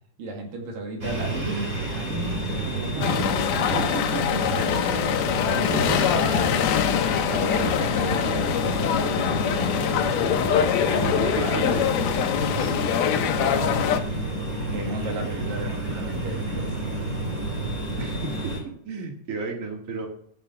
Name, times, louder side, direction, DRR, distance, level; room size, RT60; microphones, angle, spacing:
voice 1, 0.2-3.4 3.7-5.1 5.4-6.8 7.0-9.8 10.8-11.9 12.4-14.0 14.7-16.7, right 2 dB, 60° right, 2 dB, 3.7 m, -35 dB
sound 1, 1.0-18.6, right 1 dB, 20° right, 3.7 m, -30 dB
sound 2, 3.0-14.0, left 9 dB, 75° left, 2.8 m, -24 dB
voice 2, 3.0-3.3 3.7-4.4 11.0-11.8 18.0-20.1, right 4 dB, 80° right, 3 dB, 0.7 m, -33 dB
14.0 x 7.5 x 6.2 m, 0.66 s
omnidirectional pair, 4.6 m